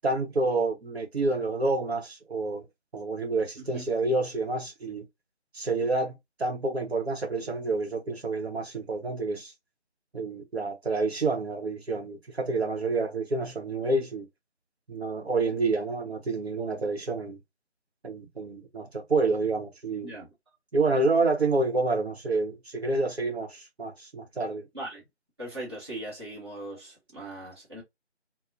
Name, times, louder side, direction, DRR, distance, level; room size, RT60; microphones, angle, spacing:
voice 1, 0.0-2.7 2.9-5.1 5.5-9.5 10.1-14.3 14.9-17.4 18.0-20.1 20.7-24.6, right 3 dB, 65° right, 0.8 m, -28 dB
voice 2, 25.4-27.8, right 1 dB, 25° right, 0.8 m, -39 dB
2.4 x 2.0 x 2.6 m
figure-of-eight pair, 165°, 35 cm